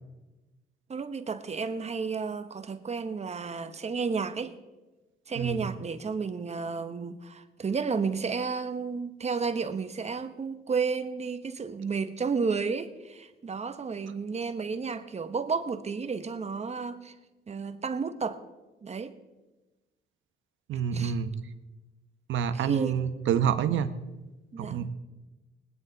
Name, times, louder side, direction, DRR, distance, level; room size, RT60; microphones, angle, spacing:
voice 1, 0.9-4.5 5.3-17.1 17.5-18.4 18.8-19.2 20.9-21.1 22.5-22.9 24.5-24.8, right 5 dB, 35° right, 1.0 m, -32 dB
voice 2, 5.3-5.7 20.7-21.3 22.3-23.9 24.6-24.9, right 8 dB, 75° right, 0.9 m, -28 dB
20.5 x 9.5 x 4.0 m
cardioid pair, 90°, 20 cm